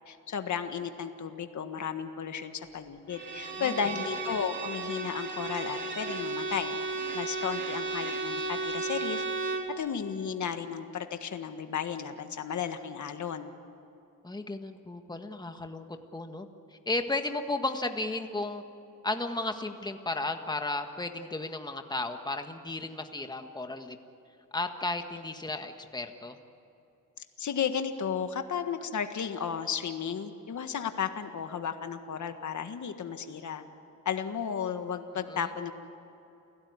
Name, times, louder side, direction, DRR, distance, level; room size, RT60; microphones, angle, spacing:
voice 1, 0.1-6.8 7.1-9.2 9.8-13.5 27.4-33.6 34.0-35.7, left 7 dB, 65° left, 7 dB, 1.7 m, -34 dB
Bowed string instrument, 3.1-9.8, right 3 dB, 35° right, 3.4 m, -34 dB
voice 2, 14.2-15.8 16.1-18.6 19.0-24.0 24.5-26.4 35.1-35.5, left 2 dB, 15° left, 6 dB, 1.6 m, -34 dB
29.0 x 17.0 x 9.7 m, 2.8 s
cardioid pair, 110°, 32 cm